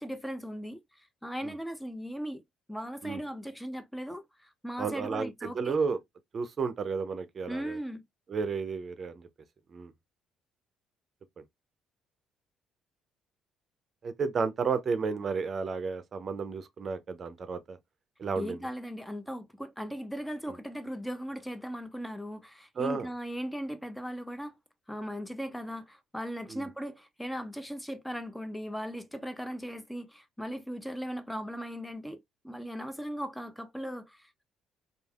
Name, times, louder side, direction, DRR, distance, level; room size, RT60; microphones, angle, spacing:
voice 1, 0.0-2.4 2.7-5.8 7.5-8.0 18.4-24.6 24.9-34.4, equal, 5° left, 0.5 m, -38 dB
voice 2, 4.8-6.0 6.3-7.8 8.3-9.3 9.7-9.9 14.0-17.8 18.2-18.6 22.8-23.1 26.5-26.7, right 5 dB, 45° right, 0.5 m, -32 dB
3.2 x 2.4 x 2.3 m
supercardioid pair, 65°, 0 cm